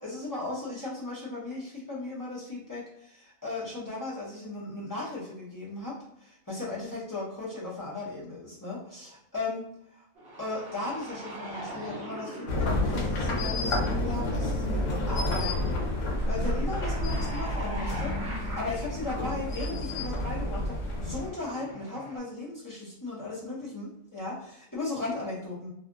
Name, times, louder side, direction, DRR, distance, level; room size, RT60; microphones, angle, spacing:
voice 1, 0.0-9.6 10.4-15.8 16.3-25.7, left 2 dB, 20° left, -8 dB, 0.7 m, -36 dB
sound 1, 10.2-22.2, right 1 dB, 55° right, 1.0 m, -44 dB
sound 2, 12.5-21.3, left 1 dB, 75° left, 1.0 m, -29 dB
2.7 x 2.4 x 2.5 m, 0.75 s
omnidirectional pair, 1.3 m